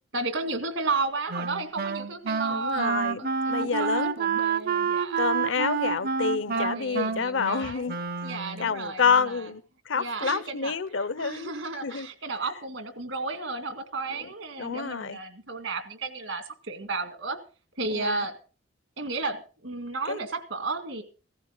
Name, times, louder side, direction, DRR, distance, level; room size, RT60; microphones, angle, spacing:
voice 1, 0.1-5.3 6.5-7.9 8.2-9.5 9.9-10.7 11.2-17.4 17.8-18.3 19.0-21.0, right 3 dB, 80° right, 2.1 m, -33 dB
Wind instrument woodwind instrument, 1.3-8.7, right 6 dB, 50° right, 0.6 m, -28 dB
voice 2, 2.5-3.2 3.5-4.1 5.2-8.0 8.6-11.5 11.8-12.1 14.2-14.3 14.6-15.2 17.9-18.3 20.1-20.2, left 5 dB, 75° left, 0.7 m, -28 dB
16.0 x 14.0 x 3.9 m
head